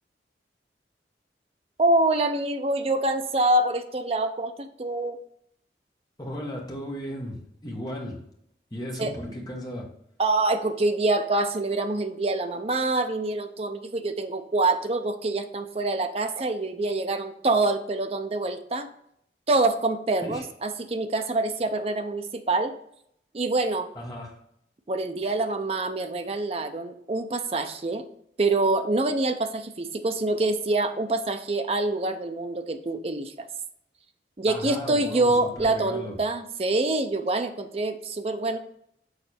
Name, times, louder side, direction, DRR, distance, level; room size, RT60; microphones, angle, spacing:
voice 1, 1.8-5.2 9.0-9.1 10.2-18.9 19.5-22.7 23.3-23.9 24.9-28.1 28.4-33.5 34.4-38.6, right 2 dB, 35° right, 7 dB, 0.5 m, -26 dB
voice 2, 6.2-7.3 7.6-8.1 8.7-9.8 20.2-20.4 23.9-24.3 34.5-36.1, equal, 20° left, -1 dB, 1.3 m, -35 dB
6.5 x 3.9 x 4.2 m, 0.72 s
head